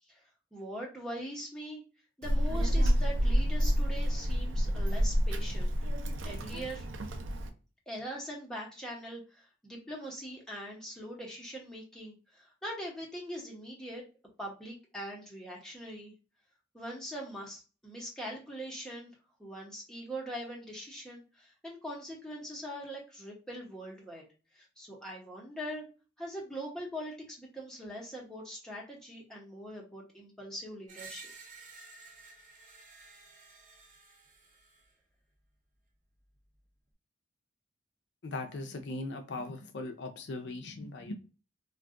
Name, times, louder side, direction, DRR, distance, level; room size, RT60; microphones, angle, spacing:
voice 1, 0.5-1.8 2.2-5.7 6.2-6.8 7.9-14.0 14.4-16.1 16.7-19.1 19.4-24.2 24.5-25.9 26.2-31.3, equal, 5° left, -3 dB, 0.9 m, -42 dB
Child speech kid speaking, 2.2-7.5, equal, 85° right, 0.5 m, -29 dB
Screech, 30.9-34.9, right 4 dB, 40° right, 0.7 m, -52 dB
voice 2, 38.2-41.1, left 2 dB, 65° left, 5 dB, 0.4 m, -39 dB
2.5 x 2.3 x 3.6 m, 0.35 s
head